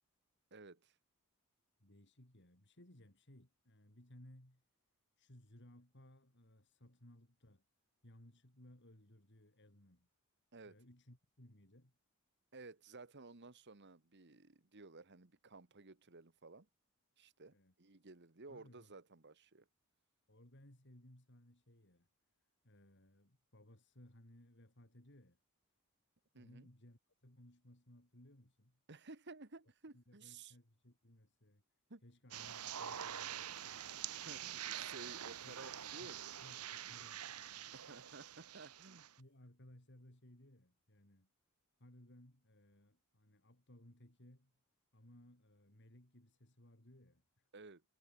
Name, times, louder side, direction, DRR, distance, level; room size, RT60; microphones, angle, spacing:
voice 1, 0.5-1.0 10.5-10.8 12.5-16.7 17.2-19.7 26.3-26.7 28.9-30.5 31.9-32.0 34.2-36.2 37.7-39.1 47.5-47.8, right 3 dB, 50° right, 1.5 m, -55 dB
voice 2, 1.8-4.6 5.2-7.6 8.0-10.1 10.6-11.9 17.5-17.7 18.5-18.9 20.3-22.1 22.6-25.4 26.3-28.8 29.9-31.6 32.0-33.8 35.4-35.6 35.8-37.7 39.2-41.3 41.8-44.5 44.9-47.5, left 1 dB, 55° left, 4.1 m, -62 dB
sound 1, 32.3-39.1, right 10 dB, 90° right, 1.2 m, -46 dB
head